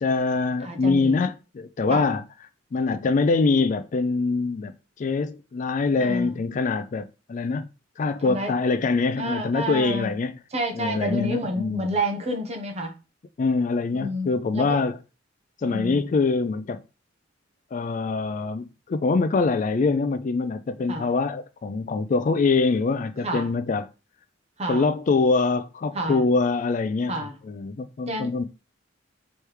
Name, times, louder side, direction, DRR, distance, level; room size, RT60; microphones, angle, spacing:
voice 1, 0.0-2.2 2.7-4.7 5.0-7.7 8.0-10.3 10.7-12.0 13.4-15.0 15.6-16.8 17.7-23.9 24.6-28.4, left 4 dB, 40° left, 0.3 m, -24 dB
voice 2, 0.6-1.2 1.9-2.1 6.0-6.4 8.2-8.5 9.2-10.1 10.5-12.9 13.9-14.8 15.6-16.0 20.9-21.1 23.2-23.5 24.6-24.8 25.9-26.2 27.1-27.4 28.1-28.3, right 1 dB, 35° right, 0.9 m, -29 dB
3.4 x 3.2 x 4.5 m
head